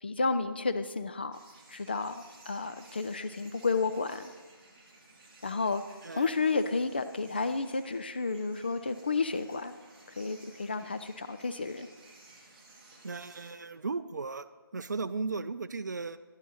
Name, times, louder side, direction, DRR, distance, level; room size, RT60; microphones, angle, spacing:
voice 1, 0.0-1.4 1.7-4.3 5.4-5.8 6.1-9.7 10.2-11.9, left 4 dB, 25° left, 10 dB, 0.4 m, -31 dB
sound 1, 1.3-13.5, right 2 dB, 20° right, 1.3 m, -56 dB
voice 2, 13.0-14.5 14.7-16.2, right 4 dB, 50° right, 12 dB, 0.5 m, -36 dB
11.0 x 9.2 x 4.1 m, 1.3 s
figure-of-eight pair, 160°, 12 cm